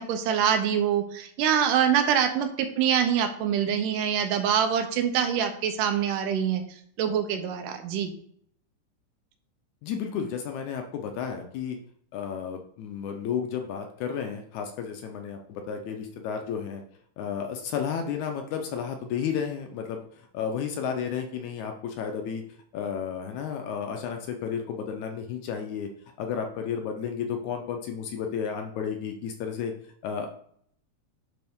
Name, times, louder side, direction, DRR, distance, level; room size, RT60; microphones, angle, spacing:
voice 1, 0.0-6.6 7.0-8.1, right 8 dB, 80° right, 7 dB, 2.3 m, -25 dB
voice 2, 9.8-11.8 12.1-16.8 17.2-20.0 20.3-22.4 22.7-25.9 26.2-29.7 30.0-30.3, left 7 dB, 75° left, 4 dB, 1.9 m, -32 dB
10.5 x 3.5 x 3.5 m, 0.64 s
omnidirectional pair, 3.8 m